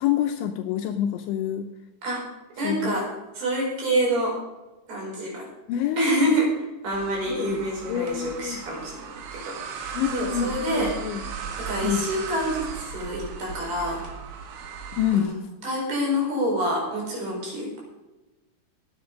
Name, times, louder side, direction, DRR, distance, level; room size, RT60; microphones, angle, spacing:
voice 1, 0.0-1.7 2.6-3.0 5.7-6.3 7.2-8.6 9.9-11.3 11.8-12.0 14.9-15.3, left 10 dB, 80° left, 6 dB, 2.9 m, -27 dB
voice 2, 2.6-3.1 3.3-4.4 4.9-5.5 6.0-8.9 9.3-10.9 11.6-14.0 15.1-17.8, right 1 dB, 50° right, -2 dB, 6.3 m, -27 dB
sound 1, 6.9-15.2, right 6 dB, 75° right, 4.2 m, -37 dB
16.0 x 10.5 x 5.0 m, 1.1 s
omnidirectional pair, 5.9 m